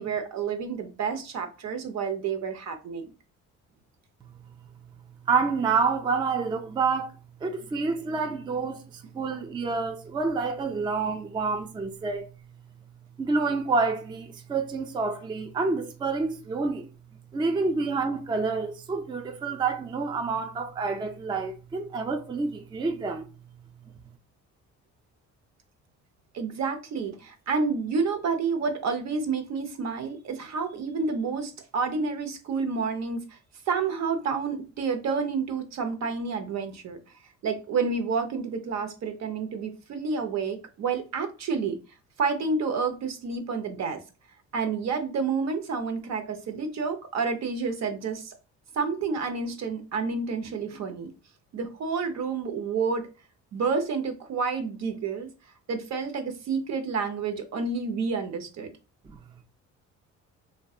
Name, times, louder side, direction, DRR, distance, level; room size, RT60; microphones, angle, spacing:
voice 1, 0.0-3.1 26.3-33.4 33.7-37.0 37.4-41.8 42.2-44.0 44.5-48.3 48.7-51.1 51.5-53.1 53.5-55.3 55.7-58.7, right 5 dB, 60° right, 0.6 m, -29 dB
voice 2, 5.3-7.1 7.4-12.3 13.2-16.9 17.3-23.3 59.1-59.2, right 4 dB, 15° right, 0.3 m, -28 dB
2.6 x 2.2 x 2.3 m
cardioid pair, 90°, 30 cm